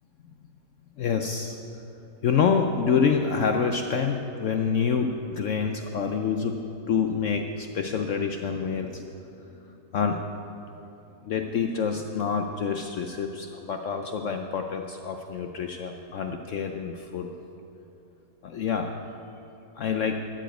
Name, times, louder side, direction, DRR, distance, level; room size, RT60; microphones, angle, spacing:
voice 1, 1.0-1.5 2.2-6.6 6.9-9.0 9.5-9.6 9.9-10.2 11.2-17.3 18.4-18.9 19.8-20.2, left 6 dB, 70° left, 4 dB, 0.7 m, -27 dB
13.0 x 5.0 x 8.9 m, 2.9 s
omnidirectional pair, 1.8 m